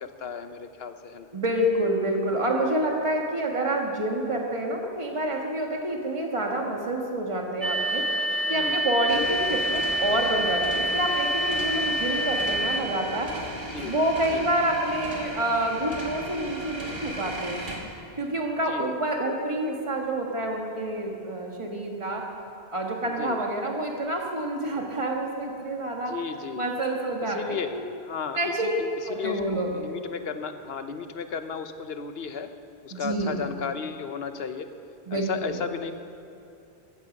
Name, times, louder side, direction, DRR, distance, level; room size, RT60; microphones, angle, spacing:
voice 1, 0.0-1.3 8.5-9.3 13.7-13.9 14.3-14.5 18.7-18.9 23.2-23.4 24.7-24.9 26.1-26.7 27.3-27.8 28.1-32.5 32.8-34.7 35.1-35.9, left 6 dB, 75° left, 9 dB, 1.1 m, -34 dB
voice 2, 1.3-8.1 8.5-13.3 13.8-17.6 18.2-22.3 22.7-26.1 26.6-27.8 28.3-28.8 29.1-29.7 32.9-33.4 35.1-35.6, right 1 dB, 30° right, 0 dB, 1.8 m, -28 dB
sound 1, 7.6-12.8, equal, 15° right, 1.3 m, -27 dB
sound 2, 9.1-17.8, right 1 dB, 50° right, 2.2 m, -37 dB
14.5 x 14.5 x 5.4 m, 2.7 s
omnidirectional pair, 1.0 m